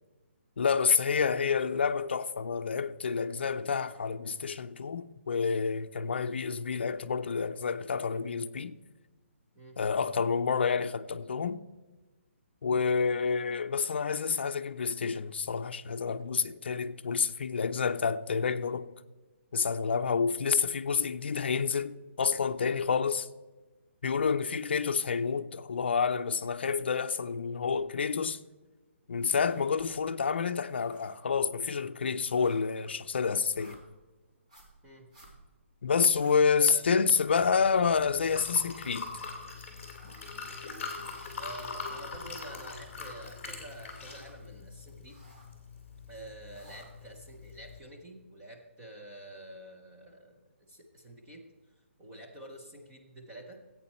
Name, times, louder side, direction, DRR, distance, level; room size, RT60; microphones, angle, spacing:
voice 1, 0.6-8.8 9.8-11.6 12.6-18.9 19.5-23.3 24.0-28.4 29.1-33.8 35.8-39.1, left 5 dB, 55° left, 0.5 m, -29 dB
voice 2, 1.1-1.5 9.6-9.8 34.8-35.1 36.7-36.8 41.4-45.2 46.1-50.4 50.7-51.4 52.0-53.6, right 1 dB, 10° right, 0.6 m, -48 dB
sound 1, 29.2-30.2 30.5-36.9 37.1-43.4 43.7-44.5 44.9-45.6 46.2-47.2, right 1 dB, 35° right, 2.3 m, -58 dB
Liquid, 37.3-47.8, left 4 dB, 15° left, 2.1 m, -43 dB
14.0 x 8.5 x 4.3 m
hypercardioid pair, 180°, 7 cm